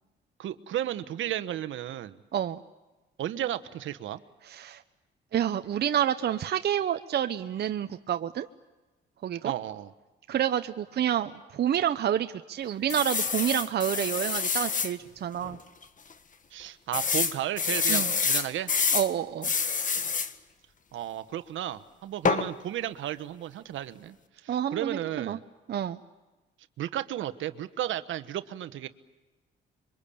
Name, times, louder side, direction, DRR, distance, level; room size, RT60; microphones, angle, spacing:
voice 1, 0.4-2.2 3.2-4.2 9.4-9.9 16.5-18.7 20.9-24.2 24.4-25.4 26.8-28.9, right 12 dB, 75° right, 12 dB, 1.2 m, -33 dB
voice 2, 2.3-2.6 4.4-4.8 5.3-8.5 9.2-9.5 10.3-15.6 17.9-18.1 18.9-19.5 24.5-25.4 25.7-26.0, right 10 dB, 55° right, 8 dB, 0.9 m, -28 dB
sound 1, 12.9-14.9 15.4-15.6 15.8-15.9 16.9-19.1 19.4-20.3 22.2-22.5, left 5 dB, 40° left, 1.6 m, -27 dB
26.5 x 23.5 x 8.6 m, 1.2 s
cardioid pair, 90°, 20 cm